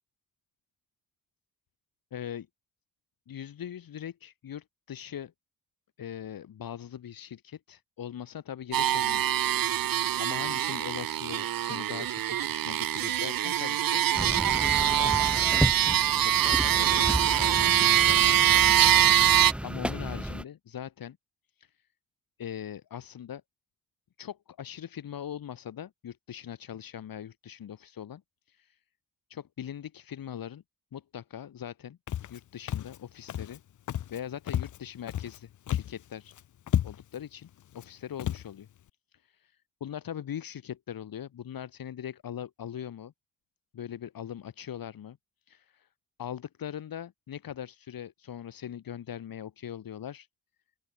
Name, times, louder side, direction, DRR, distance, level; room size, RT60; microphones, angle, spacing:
voice 1, 2.1-2.5 3.3-5.3 6.0-9.2 9.6-14.0 14.6-15.8 16.2-21.2 21.6-21.7 22.4-23.4 24.2-28.2 28.5-28.8 29.3-30.6 30.9-32.0 32.3-33.6 34.1-36.3 36.8-37.5 37.7-38.7 39.2-39.4 39.8-43.1 43.7-45.2 45.5-45.9 46.2-50.3, left 9 dB, 80° left, 4.2 m, -41 dB
sound 1, 8.7-19.5, right 11 dB, 75° right, 1.1 m, -24 dB
sound 2, 14.1-20.4, equal, 5° right, 2.7 m, -33 dB
Walk footsteps, 32.1-32.4 32.7-33.0 33.3-33.6 33.9-34.2 34.5-35.4 35.7-36.0 36.3-36.4 36.7-37.2 37.7-37.9 38.2-38.5, left 11 dB, 60° left, 0.7 m, -31 dB
open air
wide cardioid pair, 115°, 34 cm